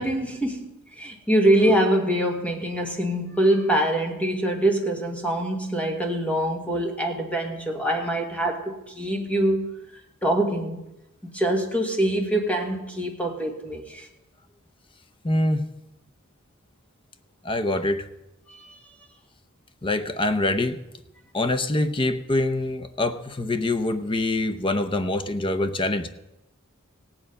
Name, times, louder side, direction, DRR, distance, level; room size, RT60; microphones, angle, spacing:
voice 1, 0.0-10.8 11.2-14.1 18.5-18.8, right 1 dB, 5° left, 1.5 m, -24 dB
voice 2, 15.2-15.7 17.4-18.1 19.8-20.8 21.3-26.1, left 2 dB, 25° left, 0.7 m, -25 dB
17.0 x 8.9 x 5.3 m
head